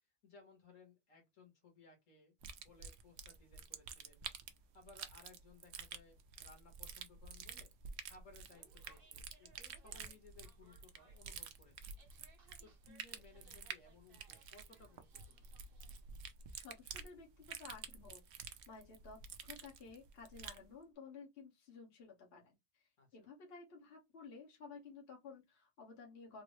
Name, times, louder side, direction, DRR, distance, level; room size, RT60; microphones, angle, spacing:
voice 1, 0.2-2.3 2.6-4.2 4.7-7.7 8.0-11.9 12.6-15.4 23.0-23.1, left 3 dB, 80° left, 1.7 m, -62 dB
sound 1, 2.4-20.7, right 7 dB, 65° right, 0.8 m, -50 dB
sound 2, 8.3-16.1, right 4 dB, 50° right, 1.1 m, -69 dB
voice 2, 16.5-26.4, left 4 dB, 50° left, 1.3 m, -55 dB
3.8 x 2.0 x 3.0 m
omnidirectional pair, 1.4 m